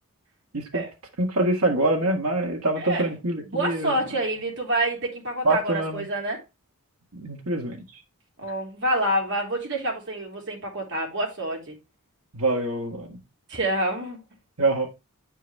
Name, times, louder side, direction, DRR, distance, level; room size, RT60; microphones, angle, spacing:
voice 1, 1.2-3.9 5.4-6.0 7.1-7.8 12.3-13.2 14.6-14.9, right 2 dB, 80° right, 1.8 m, -25 dB
voice 2, 2.8-3.1 3.5-6.4 8.4-11.7 13.5-14.2, right 1 dB, 55° right, 2.8 m, -27 dB
9.3 x 4.6 x 3.3 m
head